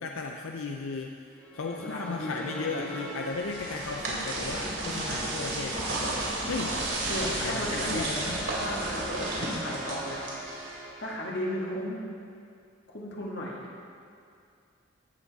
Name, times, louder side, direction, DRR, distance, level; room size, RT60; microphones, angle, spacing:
voice 1, 0.0-6.2 6.5-6.8 7.2-8.4, left 4 dB, 90° left, 2 dB, 0.5 m, -35 dB
sound 1, 1.4-11.8, right 1 dB, 10° left, 2.2 m, -41 dB
voice 2, 1.7-2.9 7.1-8.1 8.5-10.3 11.0-12.1 12.9-13.6, left 1 dB, 60° left, -3 dB, 1.8 m, -35 dB
sound 2, 3.1-10.9, right 2 dB, 80° right, 2.9 m, -33 dB
sound 3, 4.4-9.5, right 2 dB, 35° right, 0.7 m, -42 dB
16.5 x 7.2 x 4.1 m, 2.4 s
head